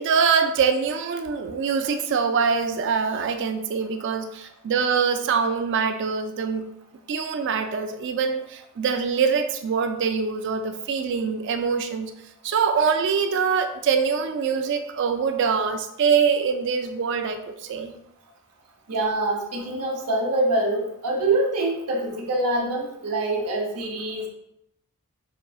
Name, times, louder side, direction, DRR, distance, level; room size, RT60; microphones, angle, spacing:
voice 1, 0.0-6.7 7.1-12.1 12.4-17.9, right 6 dB, 55° right, 7 dB, 0.3 m, -24 dB
voice 2, 18.9-24.3, right 2 dB, 90° right, 0 dB, 0.8 m, -25 dB
5.1 x 2.7 x 2.3 m, 0.79 s
head